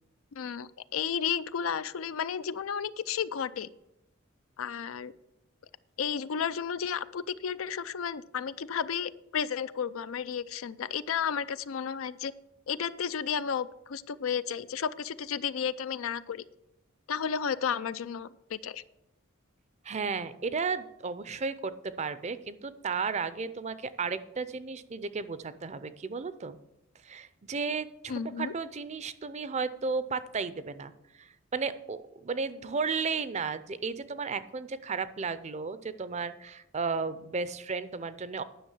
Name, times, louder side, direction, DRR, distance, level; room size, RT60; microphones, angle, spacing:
voice 1, 0.3-3.7 4.6-5.1 6.0-12.3 12.7-16.4 17.1-18.8 28.1-28.5, left 7 dB, 80° left, 15 dB, 0.4 m, -32 dB
voice 2, 19.8-26.6 27.0-30.9 31.2-38.4, right 5 dB, 35° right, 14 dB, 0.5 m, -34 dB
10.0 x 6.1 x 7.2 m, 0.86 s
head